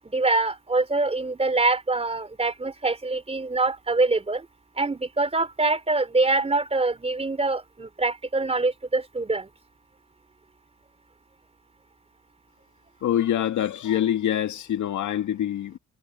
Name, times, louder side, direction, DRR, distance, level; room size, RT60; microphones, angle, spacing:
voice 1, 0.0-4.5 4.8-9.5, right 3 dB, 20° right, 3.3 m, -24 dB
voice 2, 13.0-15.8, left 11 dB, 75° left, 2.4 m, -25 dB
cardioid pair, 90°, 30 cm